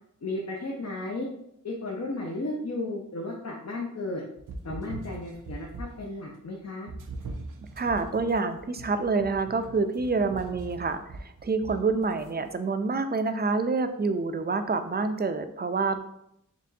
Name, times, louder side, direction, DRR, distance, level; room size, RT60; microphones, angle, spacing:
voice 1, 0.2-1.3 1.6-4.2 4.6-6.9, left 2 dB, 55° left, -2 dB, 0.7 m, -34 dB
sound 1, 4.4-6.1 6.9-12.3, right 2 dB, 90° right, 0.5 m, -41 dB
voice 2, 7.8-16.0, right 4 dB, 30° right, 8 dB, 0.4 m, -27 dB
4.3 x 3.0 x 2.7 m, 0.77 s
cardioid pair, 50°, 31 cm